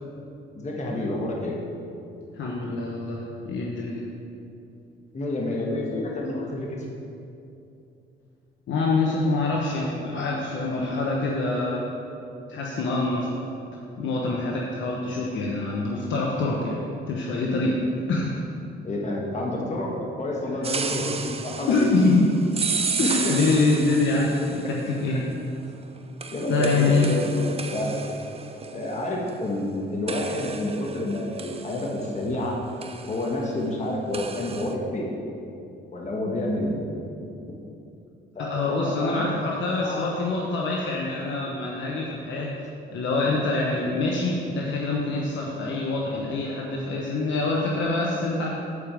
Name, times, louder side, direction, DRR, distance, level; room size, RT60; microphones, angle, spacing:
voice 1, 0.5-1.6 5.1-6.8 18.8-21.9 23.0-23.3 25.1-25.2 26.3-28.0 28.7-32.6 33.1-35.1 35.9-36.9 37.5-37.6 38.3-39.3 39.8-40.0, left 1 dB, 35° left, -2 dB, 1.5 m, -29 dB
voice 2, 2.3-4.0 8.7-11.9 12.5-13.3 14.0-16.8 17.1-18.4 20.6-20.7 21.7-22.7 23.0-25.3 26.5-27.2 38.4-42.6 42.9-48.5, left 3 dB, 70° left, -2 dB, 1.1 m, -25 dB
sound 1, 20.6-24.9 26.2-29.7 30.1-32.4 32.8-33.3 34.1-34.7, right 5 dB, 30° right, 0.6 m, -33 dB
8.3 x 5.1 x 7.5 m, 2.7 s
cardioid pair, 90°, 20 cm